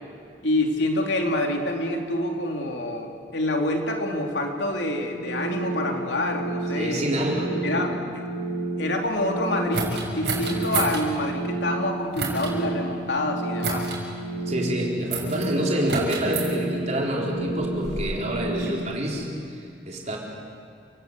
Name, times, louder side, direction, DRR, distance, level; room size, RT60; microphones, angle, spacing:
voice 1, 0.4-7.0 7.6-7.9 8.8-13.9, left 1 dB, 80° left, 2 dB, 3.0 m, -27 dB
sound 1, 5.1-18.7, right 2 dB, 65° left, 7.9 m, -31 dB
voice 2, 6.7-7.9 14.5-20.2, right 1 dB, 40° right, -1 dB, 4.4 m, -27 dB
sound 2, 9.7-11.0 12.1-12.5 13.6-14.0 15.1-15.5 15.9-16.5 17.4-18.8, right 4 dB, 65° right, 6.3 m, -30 dB
29.5 x 18.5 x 8.3 m, 2.3 s
head